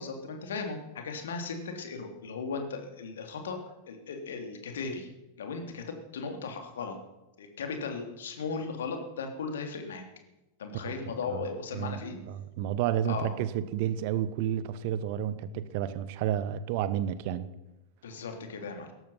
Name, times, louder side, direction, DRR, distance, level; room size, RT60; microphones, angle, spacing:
voice 1, 0.0-3.6 3.9-5.1 5.4-7.0 7.4-10.0 10.6-12.2 13.0-13.3 18.0-18.9, left 4 dB, 65° left, 5 dB, 3.3 m, -37 dB
voice 2, 12.3-17.5, right 10 dB, 45° right, 16 dB, 1.1 m, -31 dB
17.5 x 14.0 x 5.9 m, 0.99 s
figure-of-eight pair, 90°, 0 cm